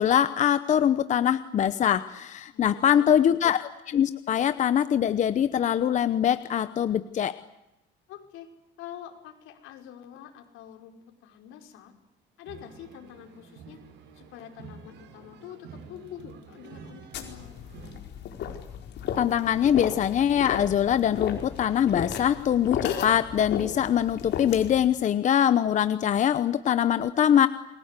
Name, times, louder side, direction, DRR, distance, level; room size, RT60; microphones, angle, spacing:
voice 1, 0.0-7.3 19.2-27.5, left 9 dB, 35° left, 12 dB, 0.9 m, -23 dB
voice 2, 2.5-3.4 8.1-8.5 8.8-11.9 12.4-13.8 14.1-17.6, left 10 dB, 80° left, 4 dB, 5.2 m, -46 dB
sound 1, 12.4-18.0, right 5 dB, 60° right, 5.3 m, -48 dB
sound 2, 17.1-24.8, left 8 dB, 60° left, 4.6 m, -34 dB
29.0 x 22.0 x 8.3 m, 0.88 s
cardioid pair, 155°, 20 cm